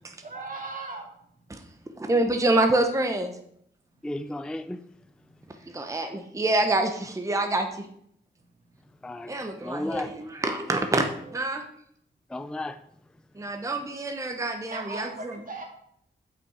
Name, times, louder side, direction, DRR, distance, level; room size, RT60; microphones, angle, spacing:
voice 1, 0.2-1.1 11.2-11.4 14.7-15.6, right 3 dB, 45° right, 2.2 m, -37 dB
voice 2, 2.0-3.3 5.7-7.9 9.3-11.6 13.4-15.4, right 2 dB, 15° right, 0.7 m, -26 dB
voice 3, 4.0-4.8 9.0-10.1 12.3-12.8, left 1 dB, 5° left, 0.4 m, -34 dB
8.0 x 6.0 x 4.9 m
wide cardioid pair, 85°, 20 cm